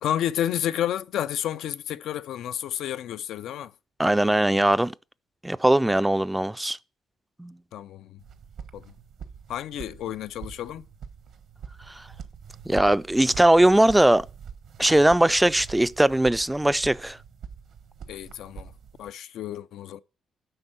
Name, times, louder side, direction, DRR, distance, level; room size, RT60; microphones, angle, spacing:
voice 1, 0.0-3.7 7.7-8.2 8.7-8.9 9.5-10.9 18.1-18.7 19.0-20.0, left 11 dB, 80° left, 0.5 m, -31 dB
voice 2, 4.0-4.9 5.4-6.8 7.4-7.5 12.7-14.3 14.8-17.2, right 1 dB, 10° right, 0.4 m, -20 dB
sound 1, 8.2-19.1, right 7 dB, 70° right, 1.1 m, -44 dB
7.9 x 5.4 x 7.4 m
cardioid pair, 90°, 0 cm